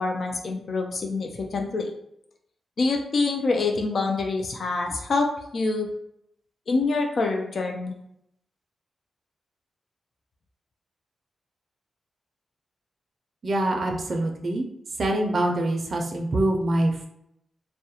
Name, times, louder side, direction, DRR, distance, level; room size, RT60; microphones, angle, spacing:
voice 1, 0.0-1.9 2.8-5.9 6.7-7.9, left 3 dB, 60° left, 2 dB, 0.3 m, -26 dB
voice 2, 13.4-14.7 15.0-17.1, right 1 dB, 50° right, 2 dB, 0.4 m, -24 dB
2.3 x 2.1 x 2.8 m, 0.76 s
cardioid pair, 95°, 0 cm